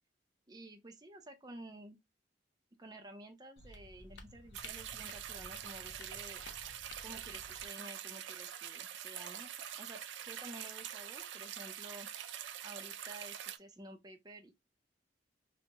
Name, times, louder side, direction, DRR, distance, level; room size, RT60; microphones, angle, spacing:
voice 1, 0.5-2.0 2.8-6.4 7.0-9.5 9.7-12.1 12.6-14.5, right 1 dB, 20° right, 0.5 m, -52 dB
sound 1, 3.6-7.7, left 3 dB, 70° left, 0.6 m, -54 dB
sound 2, 4.5-13.6, right 10 dB, 85° right, 0.4 m, -45 dB
2.9 x 2.1 x 3.3 m
head